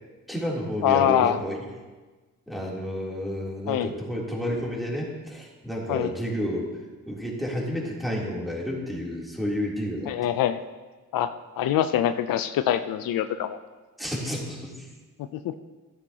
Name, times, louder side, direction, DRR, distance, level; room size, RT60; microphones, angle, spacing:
voice 1, 0.3-1.7 2.5-6.7 7.1-10.1 14.0-14.9, equal, ahead, -4 dB, 3.1 m, -30 dB
voice 2, 0.8-1.4 3.7-3.9 5.9-6.1 10.1-10.6 11.1-13.6 15.4-15.6, left 10 dB, 80° left, 11 dB, 0.5 m, -24 dB
12.5 x 9.9 x 2.9 m, 1.3 s
cardioid pair, 60°, 33 cm